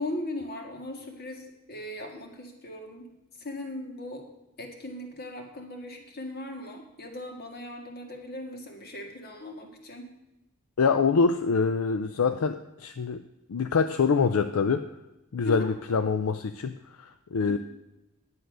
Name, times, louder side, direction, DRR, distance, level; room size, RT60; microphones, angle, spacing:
voice 1, 0.0-3.0 3.4-4.3 4.6-10.1 15.4-15.7 17.5-17.6, left 1 dB, 45° left, 3 dB, 1.8 m, -38 dB
voice 2, 10.8-13.2 13.5-14.9 15.3-17.6, left 5 dB, 70° left, 9 dB, 0.5 m, -25 dB
10.5 x 7.9 x 6.2 m, 0.95 s
head